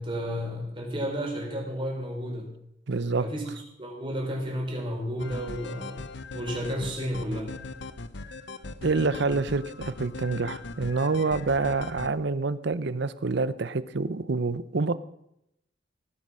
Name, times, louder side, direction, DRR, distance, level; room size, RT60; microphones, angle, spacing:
voice 1, 0.0-2.5 3.2-3.4 3.8-6.0 6.3-7.6, equal, 25° right, 0 dB, 4.6 m, -32 dB
voice 2, 2.9-3.3 8.8-14.9, right 3 dB, 60° right, 15 dB, 0.7 m, -27 dB
sound 1, 5.2-12.1, left 3 dB, 65° left, 0.8 m, -39 dB
17.5 x 9.7 x 6.3 m, 0.82 s
head